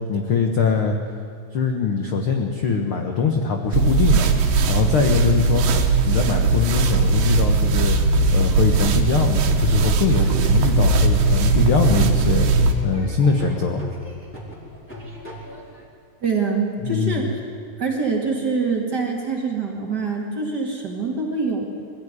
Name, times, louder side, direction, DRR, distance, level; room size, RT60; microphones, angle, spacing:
voice 1, 0.1-1.0 1.5-5.6 6.0-8.0 8.3-12.5 12.8-13.8 16.8-17.3, left 5 dB, 65° left, 3 dB, 1.3 m, -22 dB
sound 1, 3.7-12.7, right 3 dB, 70° right, 2.8 m, -19 dB
Laughter / Drum, 9.9-15.8, equal, 5° left, 3.6 m, -40 dB
voice 2, 16.2-17.4 17.8-21.7, right 4 dB, 35° right, 0 dB, 2.2 m, -24 dB
21.5 x 14.0 x 9.8 m, 2.2 s
omnidirectional pair, 4.3 m